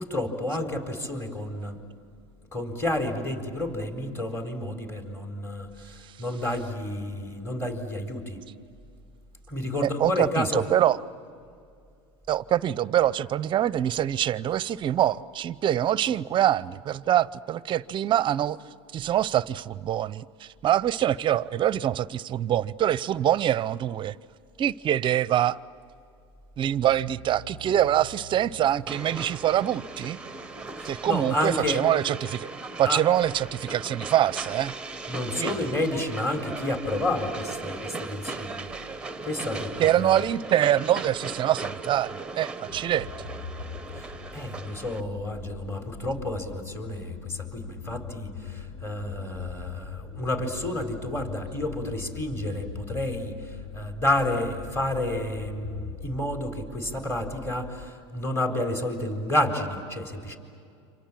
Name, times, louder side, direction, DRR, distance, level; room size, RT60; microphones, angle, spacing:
voice 1, 0.0-1.8 2.5-8.4 9.5-10.6 30.7-31.8 32.8-33.1 35.1-38.7 39.2-40.2 43.9-60.4, left 1 dB, 15° left, 4.2 m, -30 dB
voice 2, 10.0-11.0 12.3-18.6 18.9-24.1 24.6-25.6 26.6-30.2 30.8-32.5 32.8-34.7 35.3-35.5 39.8-43.3, right 11 dB, 35° right, 0.7 m, -24 dB
sound 1, 26.6-31.9, right 1 dB, 75° left, 3.4 m, -48 dB
Train, 28.9-45.0, right 3 dB, 5° right, 1.1 m, -38 dB
sound 2, 42.7-57.9, left 6 dB, 45° left, 1.3 m, -41 dB
28.5 x 26.5 x 7.6 m
hypercardioid pair, 105°, 15 cm